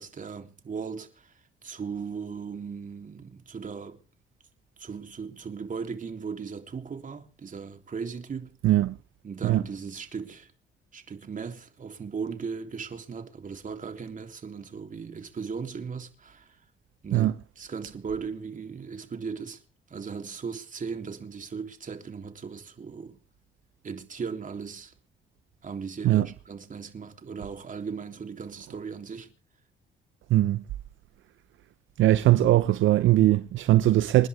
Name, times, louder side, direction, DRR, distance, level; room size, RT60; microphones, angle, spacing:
voice 1, 0.0-1.3 1.6-4.0 4.8-8.6 9.2-10.5 10.9-16.6 17.0-19.6 19.9-23.2 23.8-24.9 25.6-29.3, right 5 dB, 40° right, 3.4 m, -37 dB
voice 2, 8.6-9.0 9.4-9.6 17.1-17.3 26.0-26.3 30.3-30.6 32.0-34.3, right 14 dB, 80° right, 0.7 m, -20 dB
28.0 x 11.0 x 3.6 m
cardioid pair, 90°, 20 cm